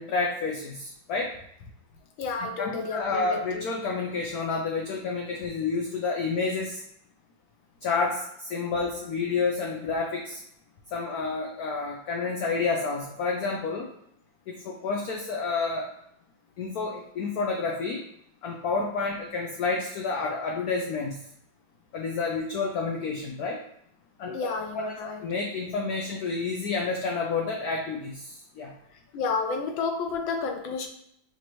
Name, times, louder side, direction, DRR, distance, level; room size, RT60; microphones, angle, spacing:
voice 1, 0.0-1.3 2.4-6.8 7.8-10.4 10.9-13.9 14.5-15.9 16.6-18.0 18.4-21.2 21.9-23.6 24.2-24.4 24.7-24.9 25.2-28.7, left 4 dB, 65° left, 0 dB, 1.0 m, -29 dB
voice 2, 2.2-3.6 24.3-25.2 29.1-30.9, left 4 dB, 85° left, 4 dB, 1.5 m, -31 dB
6.0 x 2.9 x 3.0 m, 0.71 s
omnidirectional pair, 2.1 m